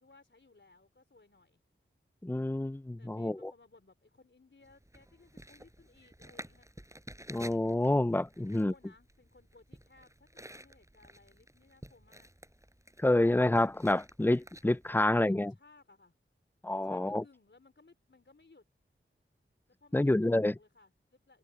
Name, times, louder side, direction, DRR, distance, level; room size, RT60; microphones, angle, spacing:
voice 1, 0.0-1.6 3.0-6.7 8.4-12.3 14.9-16.1 16.8-18.6 19.7-21.4, left 3 dB, 60° left, 4.3 m, -61 dB
voice 2, 2.2-3.5 7.3-8.7 13.0-15.5 16.6-17.2 19.9-20.5, left 1 dB, 10° left, 0.4 m, -28 dB
sound 1, 4.6-15.0, right 1 dB, 15° right, 5.4 m, -52 dB
wide cardioid pair, 45°, 21 cm